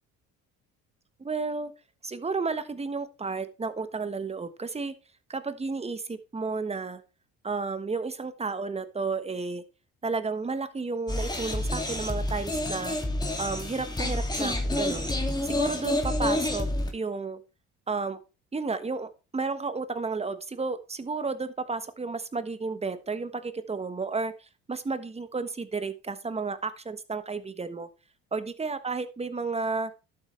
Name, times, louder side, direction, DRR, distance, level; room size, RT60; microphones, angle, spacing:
voice 1, 1.2-1.7 2.0-4.9 5.3-7.0 7.4-9.6 10.0-13.0 13.4-15.1 15.4-16.7 16.9-17.4 17.9-18.2 18.5-27.9 28.3-29.9, right 4 dB, 20° right, 11 dB, 1.3 m, -32 dB
sound 1, 11.1-16.9, left 1 dB, 15° left, 2.5 m, -29 dB
11.5 x 7.9 x 3.3 m, 0.30 s
supercardioid pair, 85°, 30 cm